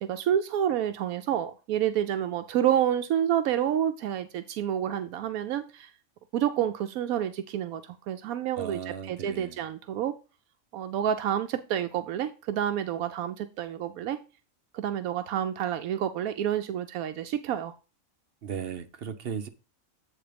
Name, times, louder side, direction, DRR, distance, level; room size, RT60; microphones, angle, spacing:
voice 1, 0.0-5.9 6.3-10.2 10.7-14.2 14.7-17.7, right 10 dB, 85° right, 1.0 m, -29 dB
voice 2, 8.6-9.6 18.4-19.5, right 7 dB, 50° right, 0.8 m, -36 dB
8.0 x 3.9 x 5.0 m
omnidirectional pair, 1.5 m